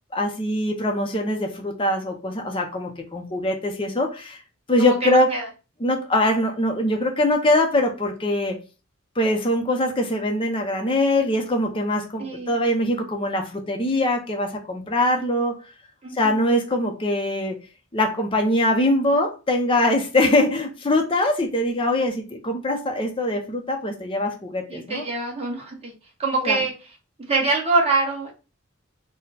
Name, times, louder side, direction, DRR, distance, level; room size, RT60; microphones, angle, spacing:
voice 1, 0.1-4.4 4.7-5.3 5.8-8.6 9.2-15.6 16.1-17.6 17.9-25.0 26.4-26.6, left 1 dB, 25° left, 0.6 m, -22 dB
voice 2, 4.8-5.5 12.2-12.5 16.0-16.4 24.7-25.9 26.2-26.7 27.3-28.3, right 3 dB, 30° right, 1.3 m, -24 dB
4.1 x 2.2 x 4.0 m
head